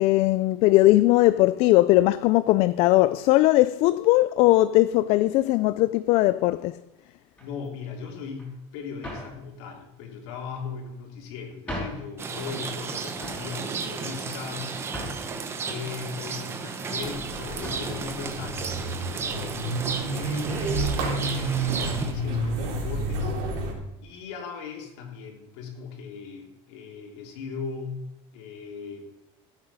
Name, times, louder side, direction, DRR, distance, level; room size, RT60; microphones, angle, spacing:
voice 1, 0.0-6.8, left 17 dB, 40° left, 0.3 m, -19 dB
sound 1, 7.3-7.7 8.4-8.5 9.0-9.4 10.3-10.9 11.4-11.5 11.7-12.1 12.5-12.9 13.2-13.5 14.1-15.4 16.0-16.8 17.1-17.3 17.6-17.9 18.7-18.8 19.2-19.3 20.6-20.8, left 1 dB, 10° left, 5.2 m, -39 dB
voice 2, 7.4-14.7 15.6-19.6 20.1-23.6 24.0-28.0 28.3-29.0, left 5 dB, 70° left, 3.3 m, -38 dB
Rain, 12.2-22.1, right 5 dB, 15° right, 0.9 m, -34 dB
sound 2, 17.0-23.7, right 2 dB, 65° right, 4.1 m, -30 dB
15.0 x 8.9 x 5.6 m
cardioid pair, 180°, 15 cm